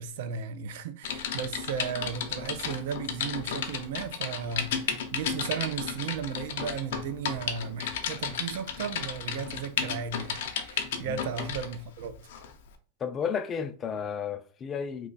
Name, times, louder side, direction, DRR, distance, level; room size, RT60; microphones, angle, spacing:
voice 1, 0.0-12.3, right 7 dB, 65° right, 0.4 m, -35 dB
Typing, 1.0-11.8 12.3-12.5, left 7 dB, 70° left, 0.6 m, -33 dB
voice 2, 13.0-15.1, left 7 dB, 25° left, 0.4 m, -33 dB
3.0 x 2.3 x 4.0 m
supercardioid pair, 145°, 0 cm